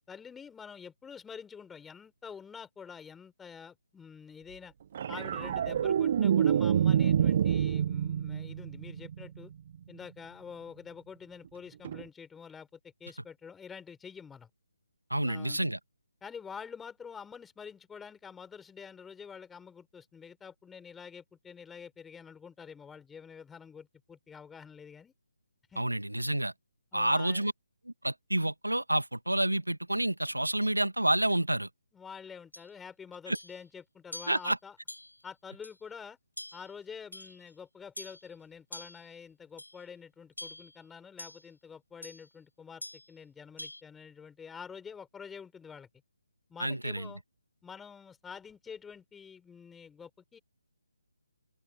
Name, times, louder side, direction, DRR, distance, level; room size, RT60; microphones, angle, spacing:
voice 1, 0.1-4.7 5.1-9.5 9.9-14.5 15.2-15.6 16.2-25.1 25.7-25.8 26.9-27.5 31.9-34.8 35.2-36.2 36.5-45.9 46.5-47.2 47.6-50.4, left 6 dB, 5° left, 5.2 m, -47 dB
sound 1, 4.9-9.4 11.8-12.0, right 9 dB, 40° right, 0.9 m, -27 dB
voice 2, 15.1-15.8 25.8-26.5 26.9-27.5 27.9-31.7 33.3-33.4 34.3-34.6 46.6-47.1, right 1 dB, 85° right, 1.8 m, -29 dB
sound 2, 32.5-32.7 33.3-33.6 34.1-34.5 34.9-35.2 35.6-35.8 36.4-36.7 37.1-37.5 38.0-38.3 38.7-39.1 39.6-39.8 40.4-40.8 41.2-41.4 42.0-42.3 42.8-43.1 43.6-43.8, left 1 dB, 85° left, 7.5 m, -45 dB
figure-of-eight pair, 145°, 0 cm